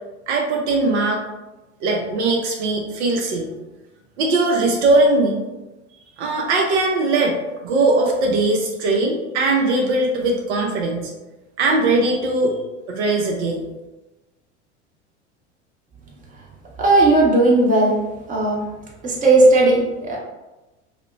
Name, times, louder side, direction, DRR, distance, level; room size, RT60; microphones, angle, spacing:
voice 1, 0.3-1.2 1.8-3.5 4.2-5.4 6.2-7.4 7.6-11.1 11.6-12.6 12.9-13.6, right 2 dB, 70° right, 0 dB, 0.5 m, -20 dB
voice 2, 16.8-18.0 18.3-18.6 19.0-20.2, right 2 dB, 20° right, -3 dB, 0.8 m, -15 dB
2.8 x 2.0 x 2.3 m, 1.1 s
hypercardioid pair, 80°, 35 cm